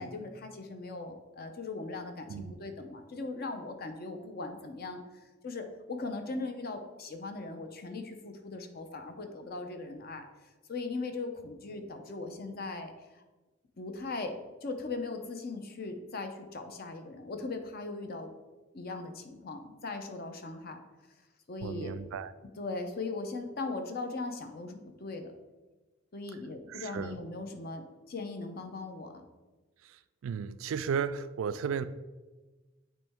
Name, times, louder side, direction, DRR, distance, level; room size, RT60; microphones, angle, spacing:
voice 1, 0.0-5.0 5.4-10.2 10.7-12.9 13.8-18.3 18.7-20.8 21.5-21.9 22.6-25.3 26.1-29.2, left 3 dB, 50° left, 6 dB, 0.7 m, -39 dB
voice 2, 21.6-22.3 26.7-27.1 29.8-31.8, right 6 dB, 90° right, 13 dB, 0.3 m, -34 dB
8.6 x 3.1 x 3.5 m, 1.2 s
head